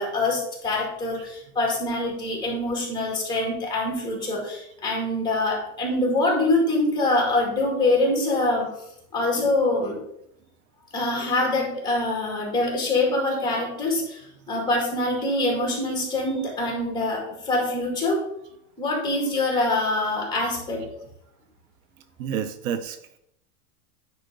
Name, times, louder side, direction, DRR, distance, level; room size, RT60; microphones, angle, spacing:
voice 1, 0.0-8.7 9.1-10.0 10.9-14.2 14.5-18.2 18.8-20.8, left 2 dB, 10° left, -1 dB, 2.3 m, -24 dB
voice 2, 22.2-23.0, right 8 dB, 65° right, 12 dB, 0.6 m, -31 dB
9.9 x 4.3 x 3.8 m, 0.77 s
supercardioid pair, 150°, 43 cm